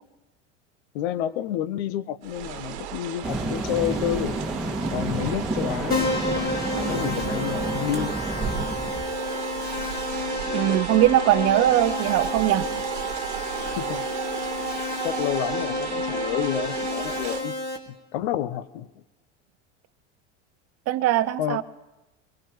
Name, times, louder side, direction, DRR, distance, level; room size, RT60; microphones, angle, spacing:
voice 1, 0.9-4.4 4.9-8.1 13.6-14.1 15.0-17.6 18.1-18.9 21.4-21.6, left 11 dB, 70° left, 16 dB, 0.8 m, -30 dB
sound 1, 2.2-17.4, right 10 dB, 75° right, 1.3 m, -34 dB
sound 2, 3.2-9.1, right 2 dB, ahead, 1.9 m, -30 dB
Keyboard (musical), 5.9-17.8, left 2 dB, 25° left, 2.3 m, -30 dB
voice 2, 10.5-12.7 20.9-21.6, right 13 dB, 45° right, 14 dB, 0.7 m, -21 dB
23.5 x 18.0 x 3.1 m, 1.0 s
hypercardioid pair, 90°, 34 cm